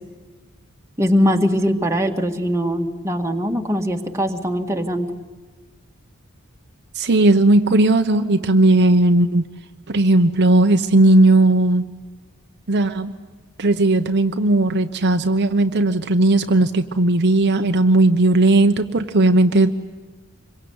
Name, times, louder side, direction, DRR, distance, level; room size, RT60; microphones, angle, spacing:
voice 1, 1.0-5.1, equal, 15° right, 3 dB, 1.9 m, -21 dB
voice 2, 7.0-9.4 9.9-11.8 12.7-13.1 13.6-19.7, right 2 dB, 50° right, 6 dB, 1.0 m, -16 dB
26.5 x 23.5 x 9.6 m, 1.4 s
head